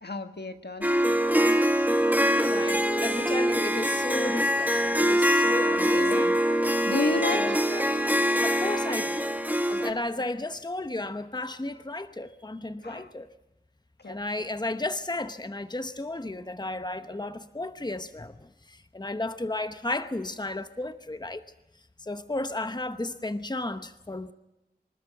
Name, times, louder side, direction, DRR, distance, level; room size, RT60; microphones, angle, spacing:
voice 1, 0.0-0.9 1.9-2.5 5.6-6.2 6.9-7.6 10.2-10.3 12.8-13.1 14.0-14.2, left 2 dB, 75° left, 1.5 m, -32 dB
Harp, 0.8-9.9, equal, 10° right, 1.6 m, -24 dB
voice 2, 2.4-6.4 7.3-7.8 8.4-9.2 9.7-13.3 14.1-21.4 22.0-24.3, left 2 dB, 25° left, 1.0 m, -34 dB
25.0 x 13.5 x 9.0 m
wide cardioid pair, 50°, 17 cm